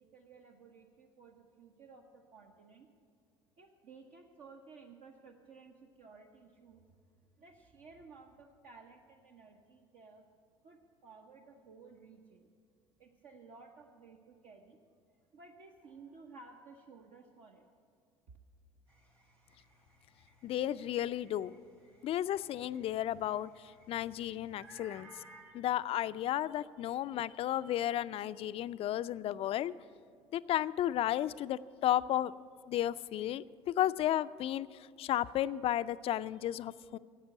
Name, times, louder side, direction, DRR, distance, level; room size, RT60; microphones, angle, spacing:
voice 1, 0.0-2.9 3.6-7.0 7.4-10.2 10.6-12.5 13.0-14.8 15.3-17.7, right 4 dB, 60° right, 1 dB, 1.1 m, -56 dB
sound 1, 18.9-25.4, right 1 dB, 90° right, 2.6 m, -60 dB
voice 2, 20.4-21.5 22.0-25.2 25.5-29.7 30.3-32.3 32.7-37.0, left 12 dB, 45° left, 15 dB, 0.4 m, -33 dB
12.5 x 8.0 x 9.8 m, 2.2 s
figure-of-eight pair, 60°, 14 cm